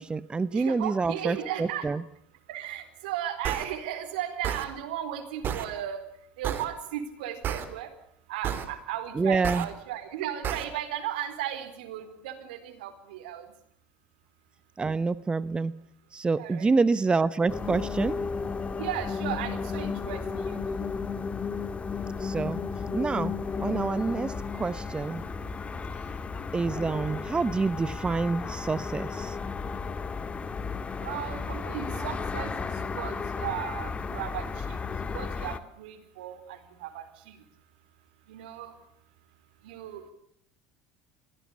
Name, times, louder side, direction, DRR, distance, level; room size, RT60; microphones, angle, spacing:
voice 1, 0.0-2.0 9.1-9.7 14.8-15.7 16.1-18.2 22.2-22.6 22.9-23.3 23.6-25.2 26.5-29.4, right 4 dB, 20° right, 16 dB, 0.9 m, -27 dB
voice 2, 0.5-1.9 2.5-6.0 6.4-7.9 8.3-13.5 16.4-16.8 18.8-20.9 31.0-34.8 35.1-37.4 38.3-38.7 39.6-40.1, right 11 dB, 80° right, 10 dB, 4.1 m, -36 dB
sound 1, 3.4-3.6 4.4-4.7 5.4-5.7 6.4-6.7 7.4-7.6 8.4-8.7 9.4-9.6 10.4-10.6, right 9 dB, 45° right, 3.5 m, -30 dB
sound 2, 17.5-35.6, left 5 dB, 25° left, 2.0 m, -34 dB
23.5 x 17.5 x 8.4 m, 0.72 s
hypercardioid pair, 80°, 5 cm